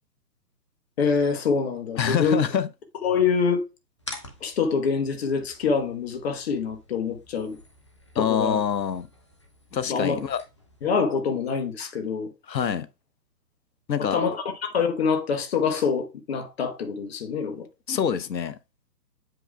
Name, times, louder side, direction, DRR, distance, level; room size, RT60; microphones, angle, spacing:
voice 1, 1.0-2.4 3.0-3.6 4.4-7.6 8.1-8.6 9.9-10.2 10.8-12.3 14.0-17.7, left 5 dB, 40° left, 1.0 m, -25 dB
voice 2, 2.0-2.7 8.2-9.1 9.7-10.4 12.5-12.9 13.9-14.2 17.9-18.6, left 8 dB, 85° left, 0.7 m, -25 dB
sound 1, 4.0-11.0, left 2 dB, 20° left, 0.5 m, -47 dB
7.7 x 6.0 x 2.2 m
figure-of-eight pair, 130°, 50 cm